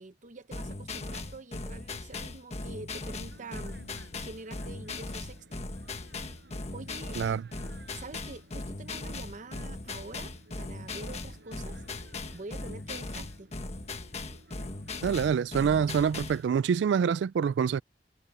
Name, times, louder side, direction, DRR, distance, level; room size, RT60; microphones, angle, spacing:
voice 1, 0.0-5.7 6.7-11.8 12.3-13.5, right 3 dB, 45° right, 0.8 m, -46 dB
sound 1, 0.5-16.4, left 3 dB, 40° left, 1.4 m, -39 dB
sound 2, 2.9-15.8, right 1 dB, 70° right, 7.2 m, -56 dB
voice 2, 15.0-17.8, right 7 dB, 85° right, 0.3 m, -26 dB
head